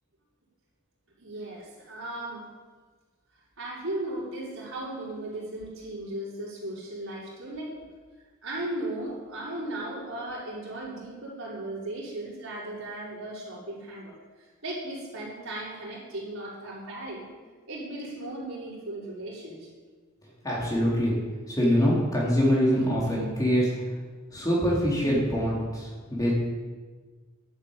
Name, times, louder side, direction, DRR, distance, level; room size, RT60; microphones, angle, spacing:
voice 1, 1.2-2.5 3.6-7.7 8.4-17.3 17.7-19.8, right 1 dB, 60° right, -6 dB, 5.7 m, -36 dB
voice 2, 20.4-21.1 21.5-23.7 24.3-26.3, equal, 15° left, -5 dB, 3.9 m, -24 dB
12.0 x 9.8 x 9.0 m, 1.4 s
head